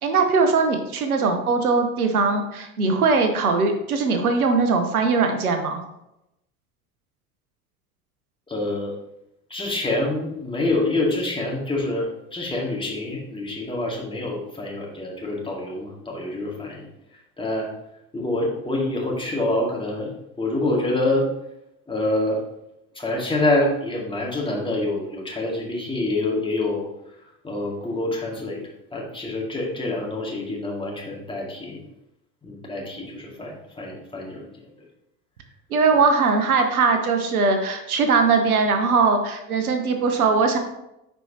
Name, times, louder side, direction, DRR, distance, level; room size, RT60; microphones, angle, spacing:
voice 1, 0.0-5.8 35.7-40.6, right 4 dB, 75° right, 5 dB, 0.9 m, -20 dB
voice 2, 8.5-9.0 9.5-16.9 17.4-17.7 18.1-20.1 20.4-21.3 21.9-22.4 22.9-26.9 27.4-28.6 28.9-31.9 32.4-34.6 35.9-36.0, left 2 dB, 10° left, -3 dB, 2.1 m, -26 dB
9.9 x 4.5 x 2.8 m, 0.87 s
figure-of-eight pair, 65°, 45 cm